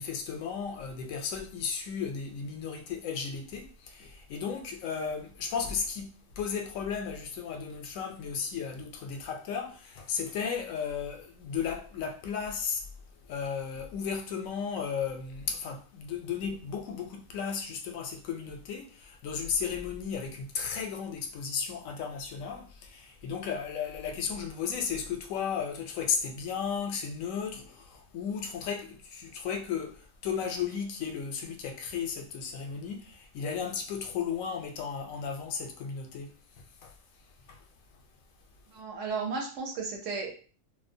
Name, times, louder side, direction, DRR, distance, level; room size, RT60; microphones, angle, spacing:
voice 1, 0.0-12.8 13.2-36.4 36.8-36.9 37.5-37.6, left 6 dB, 80° left, 1.0 m, -34 dB
voice 2, 38.7-40.3, right 4 dB, 70° right, 1.0 m, -34 dB
2.5 x 2.0 x 2.6 m
omnidirectional pair, 1.4 m